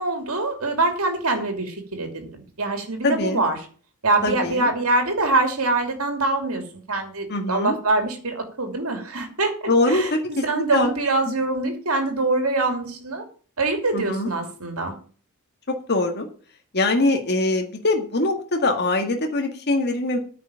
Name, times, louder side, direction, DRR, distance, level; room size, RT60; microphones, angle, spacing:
voice 1, 0.0-2.3 2.6-3.7 4.0-6.6 6.9-13.2 13.6-14.9, right 2 dB, 70° right, 5 dB, 2.9 m, -24 dB
voice 2, 3.0-3.4 4.2-4.7 7.3-7.8 9.7-10.2 10.6-10.9 13.9-14.3 15.9-16.3 16.7-20.2, left 2 dB, 50° left, 4 dB, 1.8 m, -22 dB
9.6 x 6.1 x 8.3 m, 0.41 s
head